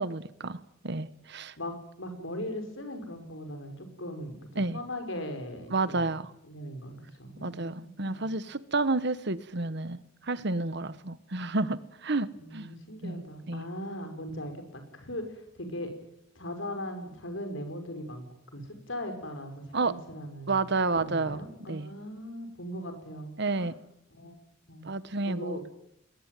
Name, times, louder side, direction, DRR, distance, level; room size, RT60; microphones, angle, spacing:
voice 1, 0.0-1.5 4.6-4.8 5.7-6.3 7.4-12.3 12.5-12.7 13.0-13.6 19.7-19.9 20.5-21.4 21.7-21.9 23.4-23.8 24.8-25.6, right 3 dB, 65° right, 14 dB, 1.3 m, -30 dB
voice 2, 1.6-6.1 6.5-8.3 12.3-15.9 16.4-18.2 18.5-23.7 24.1-24.4 24.7-24.9 25.3-25.7, equal, 85° left, 6 dB, 5.6 m, -39 dB
21.0 x 20.5 x 9.3 m, 0.79 s
head